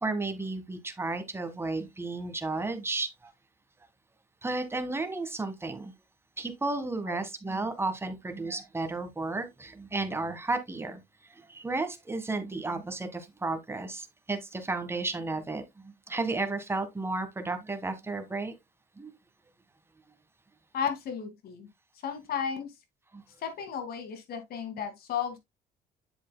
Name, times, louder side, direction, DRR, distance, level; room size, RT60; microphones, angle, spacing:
voice 1, 0.0-3.3 4.4-5.9 6.4-11.0 11.5-18.5 19.0-19.1 23.1-23.2, right 3 dB, 15° right, 1.5 m, -33 dB
voice 2, 20.7-21.7 22.0-22.7 23.4-25.4, left 7 dB, 65° left, 2.2 m, -34 dB
8.5 x 7.2 x 2.2 m
cardioid pair, 110°, 17 cm